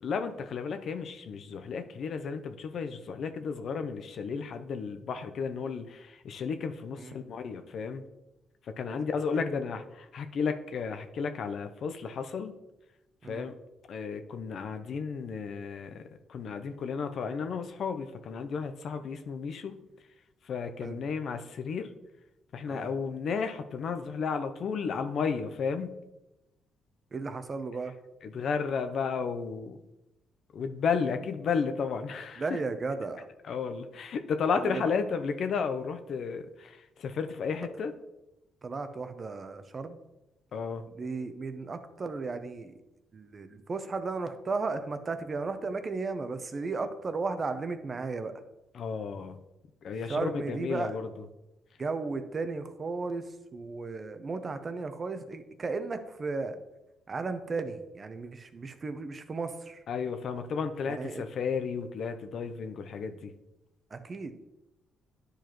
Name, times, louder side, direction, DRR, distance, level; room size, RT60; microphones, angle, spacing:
voice 1, 0.0-8.0 8.6-12.5 13.2-13.5 13.9-19.8 20.4-21.9 22.5-26.0 28.2-29.8 30.5-32.6 33.5-37.9 40.5-40.8 48.7-49.4 49.8-51.1 59.9-63.3, left 5 dB, 65° left, 8 dB, 0.6 m, -33 dB
voice 2, 27.1-27.9 32.4-33.3 34.6-34.8 38.6-40.0 41.0-42.8 43.1-48.3 50.1-50.9 51.8-53.2 53.5-56.6 57.1-59.8 60.9-61.2 63.9-64.3, right 4 dB, 35° right, 10 dB, 0.7 m, -35 dB
10.0 x 4.7 x 3.0 m, 0.96 s
cardioid pair, 90°, 0 cm